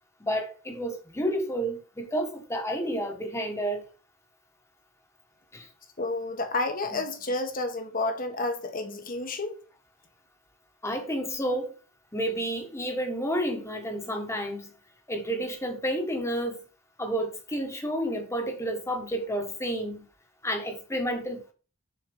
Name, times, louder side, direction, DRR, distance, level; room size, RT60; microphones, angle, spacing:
voice 1, 0.2-3.8 5.5-5.7 6.9-7.0 10.8-11.7 12.1-14.7 15.1-16.6 17.0-20.0 20.4-21.5, equal, 15° left, 1.4 m, -30 dB
voice 2, 6.0-9.6, left 2 dB, 45° left, 1.3 m, -30 dB
7.1 x 4.5 x 5.3 m
head